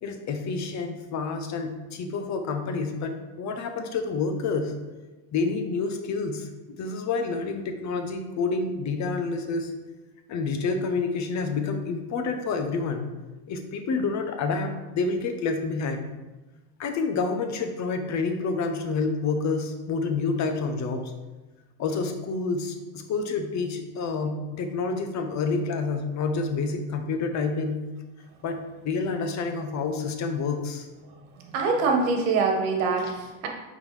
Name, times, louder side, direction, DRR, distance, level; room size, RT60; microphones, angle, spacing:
voice 1, 0.0-4.7 5.3-9.7 10.3-13.1 13.5-16.1 16.8-21.1 21.8-27.8 28.4-30.9 33.0-33.1, left 4 dB, 40° left, 6 dB, 0.8 m, -28 dB
voice 2, 31.5-33.5, right 4 dB, 70° right, 2 dB, 1.5 m, -24 dB
8.5 x 3.8 x 3.2 m, 1.2 s
supercardioid pair, 110°, 46 cm